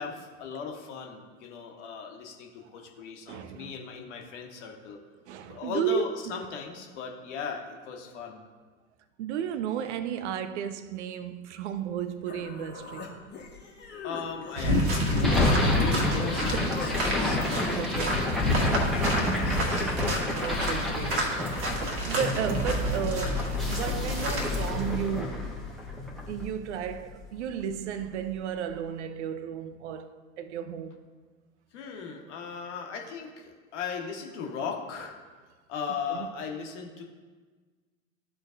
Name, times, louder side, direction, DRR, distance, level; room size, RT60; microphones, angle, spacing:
voice 1, 0.0-5.0 5.4-8.4 14.0-18.1 18.4-19.9 31.7-35.2 35.7-37.0, left 5 dB, 60° left, 1.3 m, -38 dB
voice 2, 3.3-3.7 5.3-6.4 9.2-13.1 16.4-16.8 17.7-18.3 20.4-21.4 21.7-25.6 26.3-31.0 36.1-36.2, right 8 dB, 60° right, 0.6 m, -33 dB
Human voice, 11.9-12.0 12.3-15.6 15.9-16.9, left 4 dB, 25° left, 1.3 m, -40 dB
sound 1, 14.5-24.7, equal, 30° right, 1.6 m, -28 dB
sound 2, 15.2-27.4, left 2 dB, ahead, 1.1 m, -30 dB
13.0 x 4.5 x 2.6 m
figure-of-eight pair, 90°, 40 cm